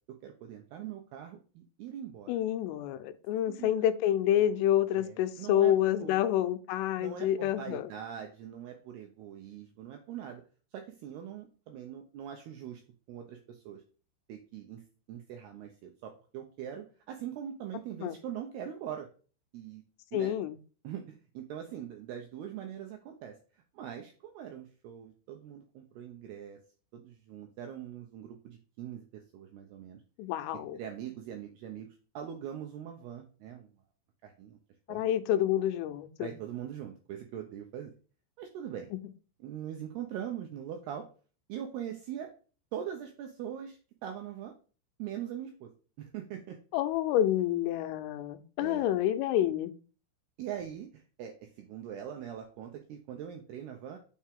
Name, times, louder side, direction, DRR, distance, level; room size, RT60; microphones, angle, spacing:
voice 1, 0.2-2.3 3.5-3.7 4.9-6.2 7.0-10.4 10.7-12.8 13.1-13.8 14.3-14.8 15.1-19.1 19.5-19.8 20.1-20.3 20.8-23.4 23.7-26.6 26.9-30.0 30.7-31.9 32.1-33.7 34.2-34.6 34.9-35.0 36.2-37.9 38.4-38.9 39.4-41.1 41.5-42.3 42.7-44.5 45.0-45.7 46.0-46.6 48.6-48.9 50.4-54.0, right 9 dB, 80° right, 2.3 m, -42 dB
voice 2, 2.3-7.9 18.0-18.1 20.1-20.6 30.2-30.8 34.9-36.3 46.7-49.7, left 11 dB, 85° left, 3.2 m, -28 dB
7.1 x 5.8 x 3.6 m
omnidirectional pair, 5.7 m